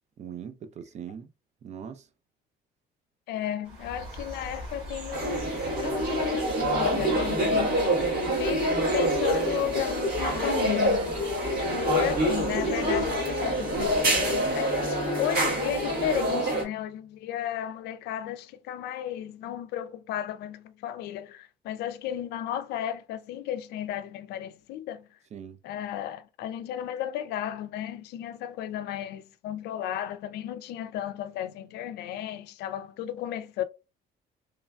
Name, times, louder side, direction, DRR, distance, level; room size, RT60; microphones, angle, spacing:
voice 1, 0.2-1.3 1.6-2.0 11.6-11.9 25.3-25.6, right 8 dB, 40° right, 0.4 m, -41 dB
voice 2, 3.3-5.4 5.8-7.8 8.4-11.1 11.7-25.1 25.6-33.6, left 11 dB, 75° left, 0.4 m, -34 dB
sound 1, 3.6-14.5, right 1 dB, 85° right, 1.6 m, -41 dB
sound 2, 5.1-16.6, right 1 dB, 60° right, 1.4 m, -26 dB
Bowed string instrument, 11.6-16.6, left 4 dB, 20° left, 0.5 m, -43 dB
3.1 x 2.2 x 2.3 m
cardioid pair, 110°, 17 cm